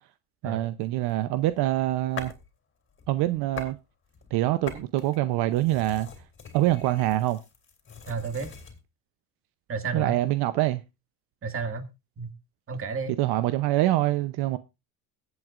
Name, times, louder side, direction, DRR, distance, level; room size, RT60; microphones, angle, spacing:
voice 1, 0.4-2.3 3.1-3.8 4.3-6.1 6.5-7.4 9.9-10.8 13.2-14.6, right 15 dB, 75° right, 0.7 m, -25 dB
sound 1, 1.1-2.5 2.9-3.8 4.1-8.8, left 6 dB, 30° left, 2.7 m, -43 dB
voice 2, 8.1-8.5 9.7-10.2 11.4-11.9 12.2-12.3 12.7-13.2, right 4 dB, 35° right, 1.9 m, -31 dB
22.5 x 7.9 x 2.5 m
cardioid pair, 115°, 39 cm